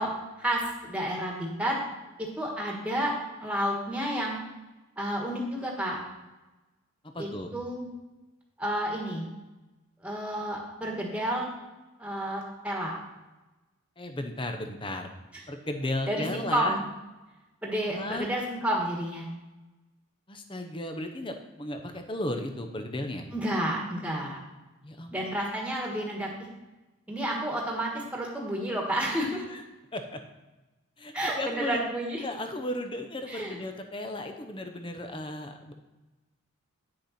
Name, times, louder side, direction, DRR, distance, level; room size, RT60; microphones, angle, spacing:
voice 1, 0.0-1.8 2.2-3.1 3.4-4.4 5.0-6.0 7.2-7.9 8.6-9.2 10.0-11.5 12.0-12.9 16.1-16.8 17.6-19.3 23.3-24.4 25.1-26.3 27.1-29.4 31.1-32.2 33.3-33.6, right 1 dB, 5° right, -2 dB, 1.6 m, -30 dB
voice 2, 7.0-7.5 14.0-15.1 15.5-16.8 17.9-18.3 20.3-23.3 24.8-25.2 29.5-29.6 29.9-30.2 31.0-31.8 32.2-35.7, left 1 dB, 25° left, 6 dB, 0.8 m, -35 dB
9.7 x 6.5 x 4.3 m, 1.1 s
head